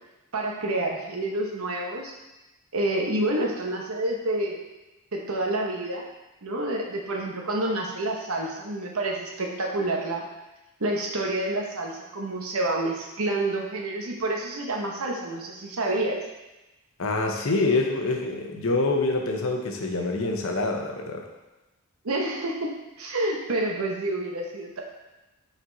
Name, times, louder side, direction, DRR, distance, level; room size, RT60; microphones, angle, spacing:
voice 1, 0.3-2.1 2.7-4.6 5.1-6.0 6.4-10.2 10.8-16.2 22.0-24.8, right 1 dB, 75° right, 0 dB, 1.0 m, -28 dB
voice 2, 17.0-21.2, left 2 dB, 65° left, 2 dB, 0.8 m, -26 dB
5.9 x 4.3 x 3.9 m, 1.0 s
head